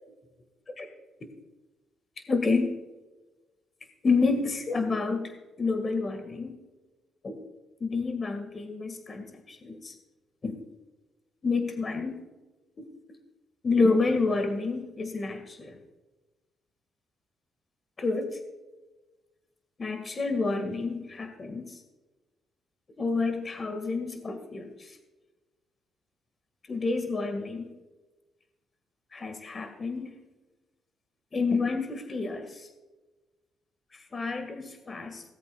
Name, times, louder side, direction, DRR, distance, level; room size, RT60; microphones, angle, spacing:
voice 1, 2.3-2.7 4.0-5.3 5.6-6.6 7.2-7.4 7.8-9.9 10.4-10.6 11.4-12.2 13.6-15.8 18.0-18.4 19.8-21.8 23.0-25.0 26.7-27.7 29.1-30.2 31.3-32.7 33.9-35.2, left 4 dB, 35° left, 6 dB, 1.7 m, -29 dB
18.0 x 8.1 x 2.3 m, 1.2 s
cardioid pair, 90°, 0 cm